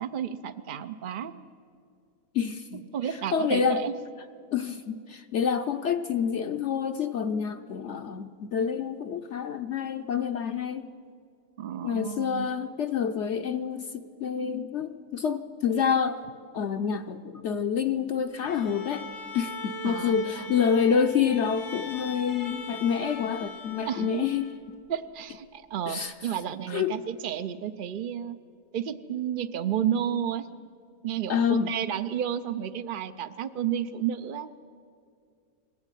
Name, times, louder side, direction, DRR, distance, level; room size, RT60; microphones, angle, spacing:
voice 1, 0.0-1.3 2.9-4.0 11.6-12.5 19.8-20.5 23.8-24.3 24.9-28.4 28.7-30.5 31.0-34.6, right 9 dB, 60° right, 9 dB, 0.5 m, -31 dB
voice 2, 2.3-2.9 3.3-3.8 4.5-10.9 11.8-16.2 16.5-19.1 19.3-24.5 25.9-26.1 26.7-26.9 31.3-31.7, left 7 dB, 60° left, 7 dB, 0.8 m, -27 dB
Bowed string instrument, 18.4-24.7, left 2 dB, 85° left, 2.3 m, -40 dB
21.0 x 15.5 x 9.0 m, 2.3 s
omnidirectional pair, 1.6 m